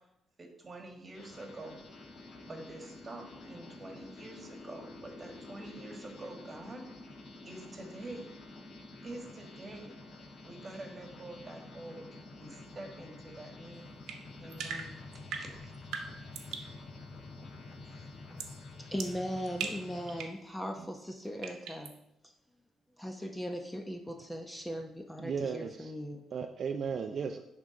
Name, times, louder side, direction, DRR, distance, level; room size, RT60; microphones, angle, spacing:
voice 1, 0.4-1.8 2.4-6.9 7.4-8.3 9.0-9.9 10.4-12.1 12.4-13.9 14.4-14.9 15.3-15.7 16.5-16.7 17.8-18.4, right 2 dB, 30° right, 2 dB, 1.7 m, -46 dB
sound 1, 1.1-20.2, left 2 dB, 60° left, 1.4 m, -49 dB
sound 2, 14.1-16.8 18.4-18.6 19.0-20.4 21.4-22.0, right 6 dB, 85° right, 0.9 m, -41 dB
voice 2, 18.9-21.9 22.2-22.3 23.0-26.2, equal, 5° left, 3 dB, 0.8 m, -38 dB
voice 3, 25.2-25.9 26.3-27.4, right 6 dB, 55° right, 6 dB, 0.5 m, -35 dB
10.5 x 3.7 x 3.9 m, 0.82 s
cardioid pair, 90°, 0 cm